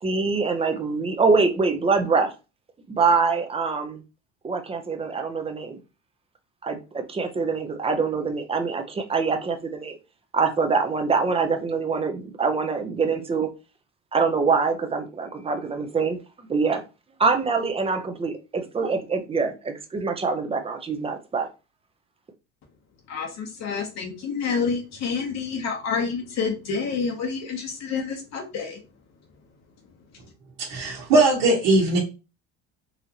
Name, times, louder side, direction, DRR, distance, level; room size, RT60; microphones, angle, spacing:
voice 1, 0.0-2.3 2.9-4.0 4.4-5.8 6.6-10.0 10.3-13.5 14.1-16.2 16.5-16.8 17.2-21.5, right 4 dB, 15° right, 0.6 m, -24 dB
voice 2, 23.1-28.8, left 5 dB, 50° left, 1.0 m, -28 dB
voice 3, 30.7-32.0, right 2 dB, 70° right, 1.4 m, -19 dB
4.1 x 2.6 x 2.9 m
supercardioid pair, 100°, 34 cm